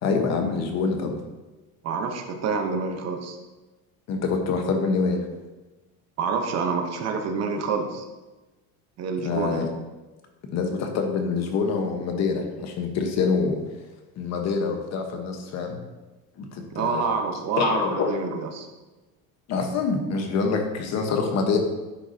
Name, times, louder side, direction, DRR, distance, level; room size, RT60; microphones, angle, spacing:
voice 1, 0.0-1.1 4.1-5.2 9.2-9.7 10.5-13.6 14.2-15.8 16.4-17.0 17.6-18.1 19.5-21.6, left 4 dB, 50° left, 4 dB, 1.2 m, -25 dB
voice 2, 1.8-3.4 6.2-8.0 9.0-9.6 16.7-18.7, right 5 dB, 45° right, 5 dB, 0.9 m, -27 dB
10.0 x 5.8 x 2.8 m, 1.1 s
cardioid pair, 135°, 35 cm